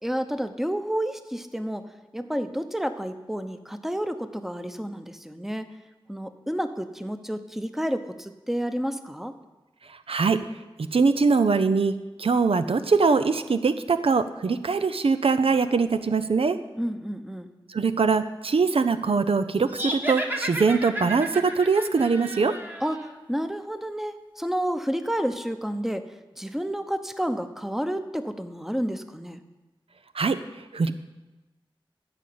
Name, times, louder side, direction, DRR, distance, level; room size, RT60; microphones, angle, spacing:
voice 1, 0.0-1.8 2.1-5.7 6.1-9.3 16.8-17.5 22.8-26.1 26.3-29.4, equal, 5° right, 9 dB, 0.8 m, -30 dB
voice 2, 10.1-10.4 10.8-16.6 17.7-22.5 30.1-30.4 30.7-30.9, right 4 dB, 80° right, 10 dB, 0.5 m, -22 dB
sound 1, 19.7-23.1, right 1 dB, 20° right, 1.3 m, -33 dB
13.5 x 5.0 x 8.6 m, 1.1 s
wide cardioid pair, 55°, 9 cm